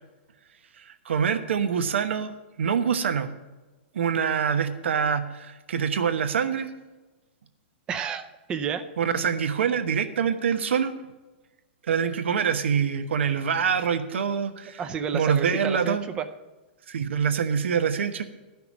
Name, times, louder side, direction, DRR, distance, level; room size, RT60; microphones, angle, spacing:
voice 1, 1.0-2.3 2.6-3.3 3.9-6.7 9.0-10.9 11.9-14.8 15.1-16.0 16.9-18.2, right 7 dB, 85° right, 9 dB, 1.1 m, -25 dB
voice 2, 7.9-8.8 14.8-16.3, right 7 dB, 15° right, 9 dB, 0.5 m, -30 dB
12.5 x 5.9 x 7.1 m, 1.2 s
hypercardioid pair, 175°, 6 cm